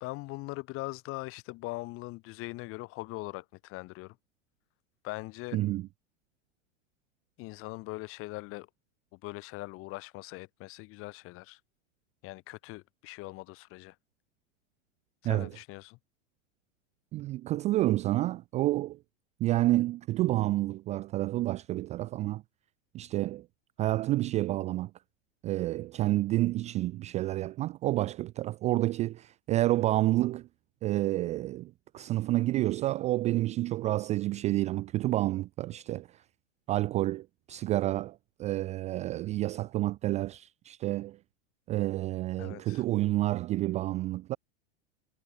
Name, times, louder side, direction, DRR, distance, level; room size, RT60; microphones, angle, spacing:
voice 1, 0.0-4.2 5.0-5.6 7.4-8.7 9.1-11.6 12.2-13.9 15.2-16.0 42.4-42.8, left 22 dB, 35° left, 0.8 m, -41 dB
voice 2, 5.5-5.9 15.2-15.5 17.1-19.0 19.4-22.4 22.9-23.5 23.8-24.9 25.4-30.5 30.8-36.2 36.7-41.2 41.7-44.4, right 16 dB, 20° right, 0.3 m, -29 dB
hypercardioid pair, 125°, 38 cm